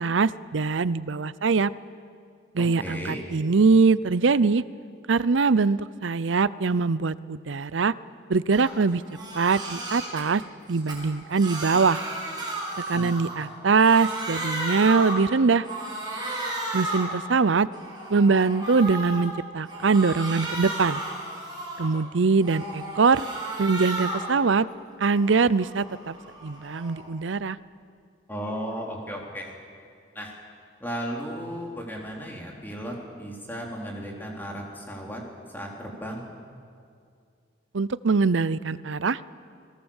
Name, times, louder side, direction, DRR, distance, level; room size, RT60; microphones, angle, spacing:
voice 1, 0.0-1.7 2.5-4.6 5.1-7.9 8.3-9.0 9.3-10.4 10.7-12.0 12.9-15.7 16.7-17.7 18.1-21.0 21.8-23.3 23.6-24.7 25.0-26.2 26.4-27.6 37.7-39.2, right 4 dB, 85° right, 18 dB, 0.6 m, -22 dB
voice 2, 2.6-3.2 12.9-13.1 16.9-17.0 28.3-29.5 30.1-30.4 30.8-35.2 35.5-36.2, equal, 10° left, -1 dB, 3.7 m, -35 dB
Crying sobbing, 8.5-8.7 9.1-10.2 10.7-13.5 13.7-15.3 15.6-17.2 17.6-19.3 19.7-22.0 22.4-24.3 24.7-27.1, right 2 dB, 25° right, 5.7 m, -34 dB
29.0 x 21.0 x 7.3 m, 2.3 s
head